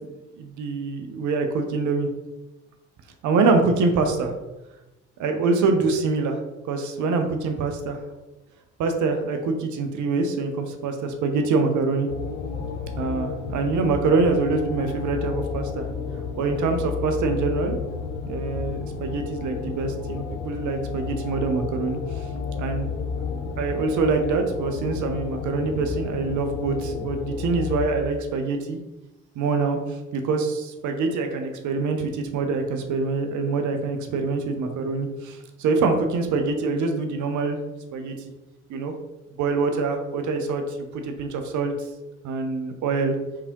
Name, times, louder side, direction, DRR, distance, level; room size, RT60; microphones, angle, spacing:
voice 1, 0.4-2.1 3.2-4.3 5.2-6.4 6.6-8.0 8.8-12.1 13.0-15.9 16.4-17.8 18.3-22.3 22.6-22.9 23.6-28.8 29.4-37.6 37.9-38.2 38.7-38.9 39.4-41.7 42.2-43.2, right 4 dB, 55° right, 5 dB, 0.8 m, -25 dB
sound 1, 12.1-27.9, left 6 dB, 80° left, 0.7 m, -32 dB
4.8 x 3.4 x 2.9 m, 1.0 s
hypercardioid pair, 60°, 36 cm